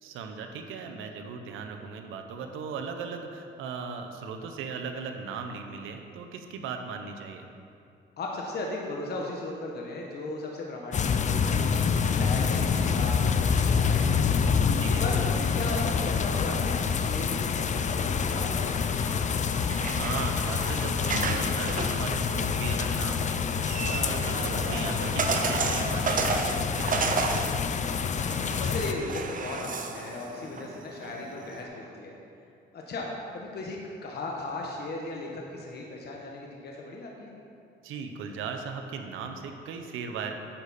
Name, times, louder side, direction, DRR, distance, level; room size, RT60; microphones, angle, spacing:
voice 1, 0.0-7.4 14.8-15.0 19.8-27.5 37.8-40.3, right 5 dB, 90° right, 5 dB, 0.8 m, -38 dB
voice 2, 8.2-14.5 14.9-19.4 28.6-32.1 32.7-37.3, left 2 dB, 55° left, -1 dB, 1.2 m, -37 dB
sound 1, 10.9-28.9, left 6 dB, 35° left, 0.5 m, -27 dB
sound 2, 19.4-31.6, right 4 dB, 45° right, 0.8 m, -33 dB
9.9 x 6.7 x 4.2 m, 2.6 s
cardioid pair, 90°, 20 cm